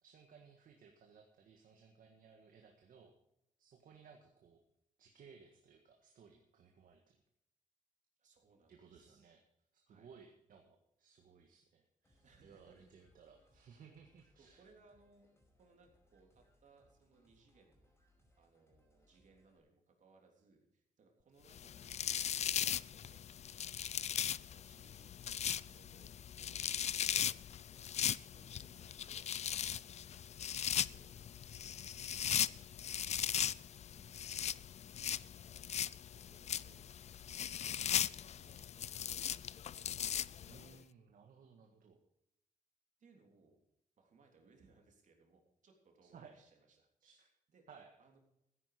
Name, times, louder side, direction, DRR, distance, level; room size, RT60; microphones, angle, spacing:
voice 1, 0.0-3.1 3.6-4.6 5.0-7.2 8.7-9.4 9.7-14.6 38.3-38.7 40.4-42.0 46.0-46.4 47.0-47.3 47.7-47.9, right 6 dB, 85° right, 3 dB, 1.7 m, -61 dB
voice 2, 8.2-9.3 9.9-10.1 12.2-12.9 14.4-15.3 15.5-17.9 18.4-25.1 25.6-26.1 26.4-31.4 32.0-36.9 37.2-39.7 40.7-40.9 43.0-43.6 44.0-47.2 47.5-47.6 48.0-48.2, right 4 dB, 65° right, 2 dB, 3.3 m, -68 dB
sound 1, 12.0-19.6, left 1 dB, 20° left, 5.1 m, -73 dB
sound 2, 21.5-40.7, left 9 dB, 55° left, 0.4 m, -38 dB
14.5 x 10.0 x 5.0 m, 0.80 s
wide cardioid pair, 125°, 14 cm